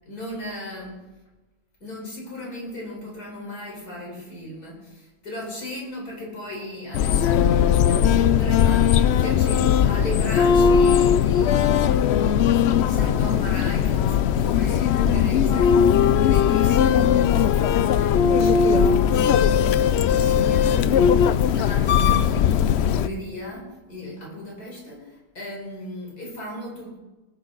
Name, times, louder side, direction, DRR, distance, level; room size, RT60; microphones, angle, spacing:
voice 1, 0.1-1.0 1.8-15.9 16.2-27.0, left 1 dB, 90° left, -3 dB, 4.8 m, -36 dB
sound 1, 6.9-23.1, left 8 dB, 65° left, 0.6 m, -19 dB
19.0 x 10.5 x 3.9 m, 1.1 s
omnidirectional pair, 1.6 m